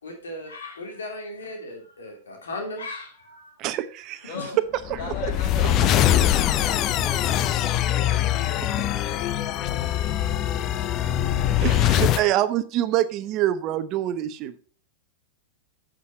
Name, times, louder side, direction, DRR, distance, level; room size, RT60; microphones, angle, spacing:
voice 1, 0.0-3.5 4.3-4.5, left 2 dB, 85° left, 2 dB, 2.9 m, -36 dB
voice 2, 3.6-4.3 4.9-5.3 5.6-5.7 11.6-14.6, right 13 dB, 40° right, 12 dB, 0.8 m, -26 dB
voice 3, 4.2-4.6 5.0-6.8 7.8-9.0, left 5 dB, 55° left, 1 dB, 5.0 m, -38 dB
sound 1, 4.9-12.3, left 11 dB, 35° left, 0.6 m, -23 dB
8.5 x 6.3 x 5.4 m, 0.40 s
hypercardioid pair, 115°, 0 cm